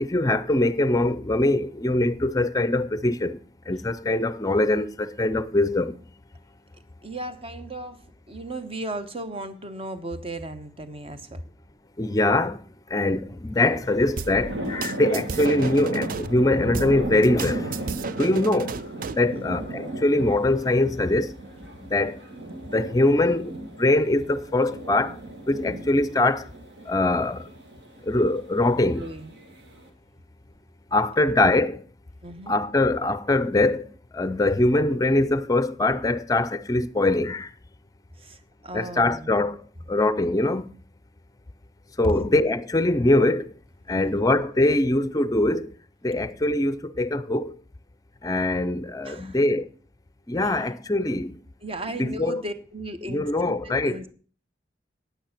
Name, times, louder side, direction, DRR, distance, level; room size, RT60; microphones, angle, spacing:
voice 1, 0.0-3.4 3.7-6.0 12.0-12.6 12.9-18.8 19.1-21.3 21.8-22.2 22.7-25.2 25.5-26.5 26.9-27.5 28.0-29.0 30.9-31.8 32.5-37.5 38.7-39.6 39.9-40.7 42.0-43.5 43.9-45.7 46.0-47.6 48.2-49.7 50.3-51.4 51.9-52.4 53.0-54.0, left 2 dB, 20° left, 0.5 m, -23 dB
voice 2, 7.0-8.0 8.3-11.4 19.4-19.6 28.9-29.3 32.2-32.5 38.2-39.3 42.0-42.1 43.9-44.3 46.1-46.2 49.0-49.4 50.4-50.5 51.6-54.1, right 1 dB, 35° right, 1.0 m, -35 dB
sound 1, 13.6-29.9, right 2 dB, 70° right, 2.2 m, -36 dB
sound 2, 14.2-16.3 16.7-19.3, right 5 dB, 50° right, 0.5 m, -34 dB
9.3 x 9.2 x 5.8 m
head